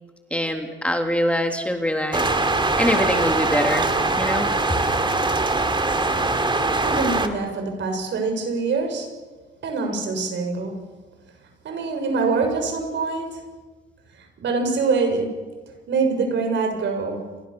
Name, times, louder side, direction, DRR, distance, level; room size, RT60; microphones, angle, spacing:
voice 1, 0.3-2.3 2.8-3.9 4.2-4.5, left 1 dB, 5° left, 3 dB, 3.1 m, -23 dB
sound 1, 2.1-7.3, right 2 dB, 25° right, 2.9 m, -22 dB
voice 2, 6.8-9.1 9.6-10.8 11.6-13.4 14.4-15.3 15.9-17.2, right 4 dB, 65° right, 5 dB, 6.8 m, -24 dB
29.5 x 24.5 x 7.0 m, 1.4 s
cardioid pair, 90°, 20 cm